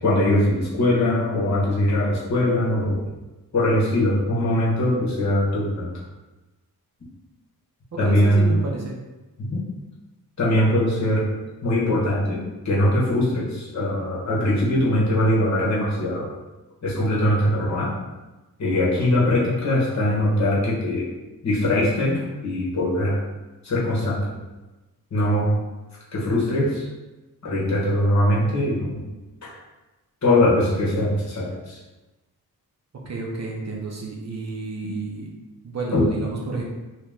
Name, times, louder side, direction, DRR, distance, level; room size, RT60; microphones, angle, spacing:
voice 1, 0.0-3.0 3.5-5.9 8.0-8.5 9.4-9.6 10.4-11.3 11.6-16.3 16.8-17.9 18.6-21.1 21.4-23.2 23.6-24.4 25.1-25.6 26.1-26.9 27.4-29.0 29.4-29.5 30.2-31.8 34.8-34.9 35.9-36.0, left 1 dB, 45° left, -6 dB, 1.2 m, -21 dB
voice 2, 8.0-8.9 33.1-35.3 35.6-36.6, right 3 dB, 45° right, -2 dB, 0.7 m, -31 dB
2.9 x 2.9 x 3.5 m, 1.1 s
wide cardioid pair, 120°, 37 cm